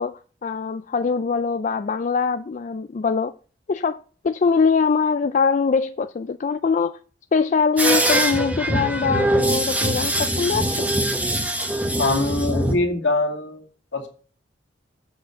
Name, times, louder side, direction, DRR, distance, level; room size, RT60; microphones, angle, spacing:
voice 1, 0.0-3.3 3.7-7.0 7.3-10.9, left 5 dB, 40° left, 0.4 m, -22 dB
sound 1, 7.8-12.7, right 1 dB, 10° right, 1.0 m, -22 dB
voice 2, 12.0-13.6 13.9-14.1, left 2 dB, 70° left, 2.2 m, -23 dB
7.5 x 6.5 x 5.7 m
head